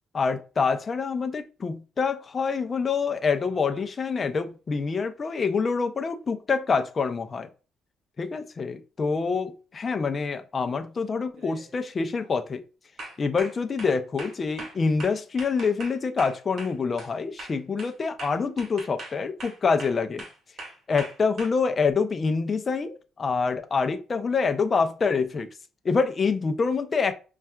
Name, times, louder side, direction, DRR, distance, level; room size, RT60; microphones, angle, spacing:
voice 1, 0.1-7.5 8.2-12.6 13.2-20.2 20.9-25.5 25.8-27.1, left 5 dB, 40° left, 0.5 m, -26 dB
sound 1, 3.4-4.0 8.2-8.3 9.8-10.1 10.6-10.9 11.4-11.7 12.1-12.4 13.0-17.1 17.4-21.5, right 2 dB, 60° right, 1.3 m, -42 dB
5.4 x 2.4 x 2.3 m
cardioid pair, 90°, 0 cm